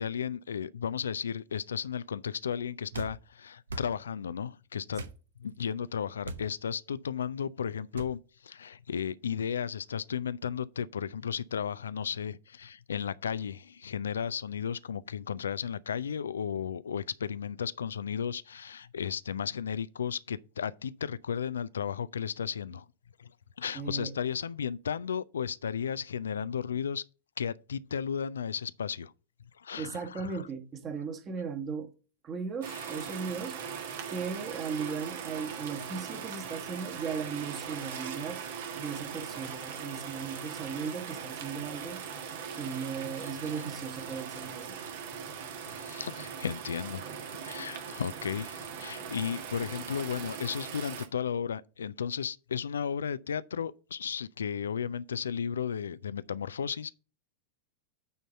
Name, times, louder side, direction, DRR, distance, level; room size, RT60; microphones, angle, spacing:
voice 1, 0.0-5.0 5.4-22.9 23.2-23.3 23.6-27.0 27.4-29.1 29.6-30.4 32.7-33.0 45.7-56.9, left 7 dB, 70° left, 0.3 m, -34 dB
sound 1, 2.9-3.2 3.7-3.9 4.9-5.2 6.2-6.5 7.9-8.1, right 3 dB, 70° right, 0.8 m, -39 dB
voice 2, 23.7-24.1 29.8-31.9 32.2-33.6 34.0-38.4 38.8-42.0 42.5-44.8 49.0-49.1, right 5 dB, 30° right, 1.5 m, -37 dB
sound 2, 32.6-51.1, right 7 dB, 55° right, 1.3 m, -40 dB
9.3 x 4.0 x 5.5 m
figure-of-eight pair, 90°, 0 cm